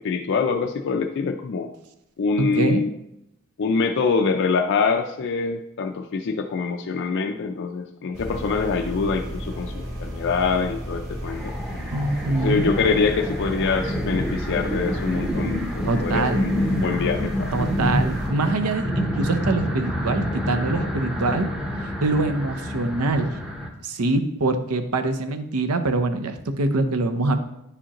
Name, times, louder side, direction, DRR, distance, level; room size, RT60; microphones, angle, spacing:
voice 1, 0.0-1.7 2.2-2.9 3.6-11.5 12.4-17.5, left 4 dB, 55° left, 3 dB, 0.4 m, -25 dB
voice 2, 2.4-2.8 11.9-12.6 15.9-16.5 17.5-21.5 22.0-23.4 23.8-27.4, right 2 dB, 80° right, 8 dB, 0.6 m, -24 dB
sound 1, 8.1-18.3, equal, 45° right, 1.8 m, -33 dB
sound 2, 11.3-23.7, equal, 5° right, 0.7 m, -28 dB
9.8 x 4.9 x 2.9 m, 0.84 s
head